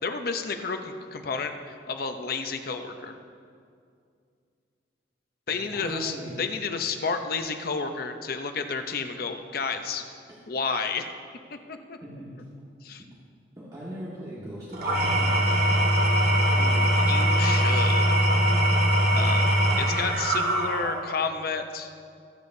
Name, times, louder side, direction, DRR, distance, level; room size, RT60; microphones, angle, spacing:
voice 1, 0.0-3.1 5.5-10.0 10.5-11.1 11.7-12.0 12.8-13.0 16.5-18.0 19.1-21.9, left 5 dB, 55° left, 6 dB, 0.7 m, -31 dB
voice 2, 5.5-6.3 12.0-12.3 13.5-15.3 19.1-19.3, right 1 dB, 20° right, -8 dB, 1.6 m, -39 dB
Engine / Tools, 14.7-21.2, right 1 dB, 55° right, 1.7 m, -22 dB
23.5 x 8.5 x 2.7 m, 2.3 s
head